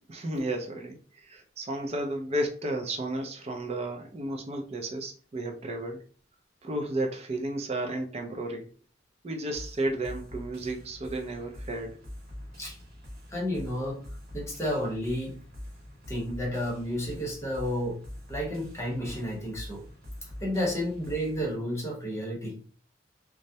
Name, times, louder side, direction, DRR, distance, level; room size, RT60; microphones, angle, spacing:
voice 1, 0.1-6.1 6.6-8.7 9.2-12.0 20.6-20.7, right 1 dB, 35° right, 3 dB, 0.4 m, -33 dB
sound 1, 9.5-21.5, left 1 dB, 55° right, 1.1 m, -44 dB
voice 2, 13.3-14.0 14.3-15.4 16.1-18.0 18.3-19.8 20.4-22.6, equal, 15° left, -3 dB, 0.8 m, -31 dB
2.2 x 2.0 x 2.7 m, 0.41 s
head